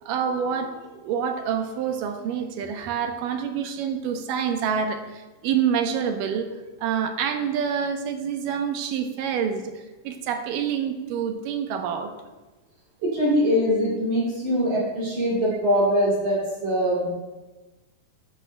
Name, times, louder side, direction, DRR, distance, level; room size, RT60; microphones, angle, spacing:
voice 1, 0.0-6.5 6.8-9.7 10.0-12.1, right 7 dB, 75° right, 6 dB, 2.2 m, -27 dB
voice 2, 13.0-17.1, equal, 55° right, -6 dB, 3.6 m, -22 dB
13.0 x 12.5 x 2.2 m, 1.2 s
omnidirectional pair, 4.3 m